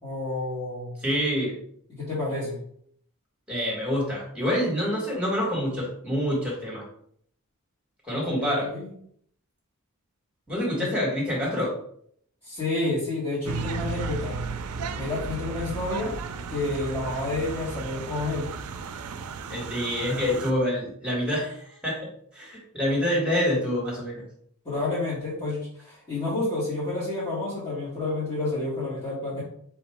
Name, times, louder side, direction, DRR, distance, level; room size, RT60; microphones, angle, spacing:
voice 1, 0.0-1.0 2.0-2.6 8.3-8.9 10.8-10.9 12.4-14.4 14.9-16.1 16.5-18.5 24.6-29.4, left 2 dB, 25° left, -11 dB, 1.7 m, -29 dB
voice 2, 1.0-1.5 3.5-6.8 8.0-8.7 10.5-11.7 19.5-22.1 22.3-24.2, equal, 5° right, -3 dB, 1.7 m, -27 dB
sound 1, 13.4-20.5, right 5 dB, 80° right, 0.4 m, -34 dB
3.5 x 2.9 x 4.5 m, 0.65 s
head